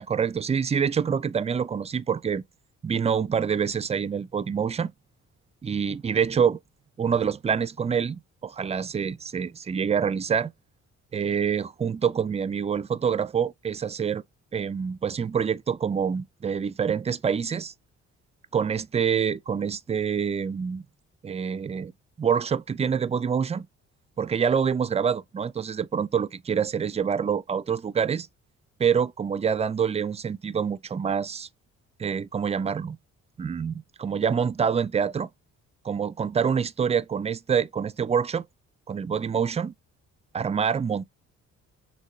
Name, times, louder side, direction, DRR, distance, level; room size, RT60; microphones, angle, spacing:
voice 1, 0.0-2.4 2.8-4.9 5.6-6.6 7.0-10.5 11.1-14.2 14.5-17.7 18.5-20.8 21.2-21.9 22.2-23.7 24.2-28.3 28.8-31.5 32.0-33.0 33.4-35.3 35.8-38.4 38.9-39.7 40.3-41.0, right 7 dB, 20° right, 0.4 m, -26 dB
6.5 x 2.7 x 2.7 m
cardioid pair, 90°, 30 cm